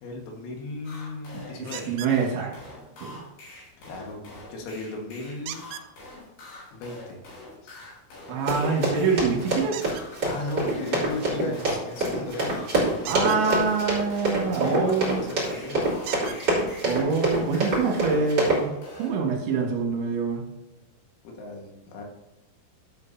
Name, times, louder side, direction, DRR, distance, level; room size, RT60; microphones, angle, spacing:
voice 1, 0.0-1.9 3.8-5.6 6.7-7.2 7.6-7.8 9.3-9.7 10.2-12.6 12.9-13.6 14.4-15.9 21.2-22.0, left 2 dB, 90° left, 0 dB, 4.4 m, -36 dB
sound 1, 0.8-19.1, left 1 dB, 50° left, 4.5 m, -44 dB
voice 2, 1.3-2.5 3.0-3.2 8.3-9.8 13.1-15.2 16.8-20.4, right 5 dB, 65° right, -1 dB, 3.7 m, -25 dB
sound 2, 1.7-2.2 5.5-5.9 9.7-10.1 13.0-13.4 15.1-15.2 16.1-16.4 17.4-17.5 18.0-18.1, right 11 dB, 85° right, 2.6 m, -38 dB
Run, 8.5-18.6, right 1 dB, 25° right, 2.8 m, -26 dB
12.0 x 8.2 x 2.8 m, 0.98 s
omnidirectional pair, 5.9 m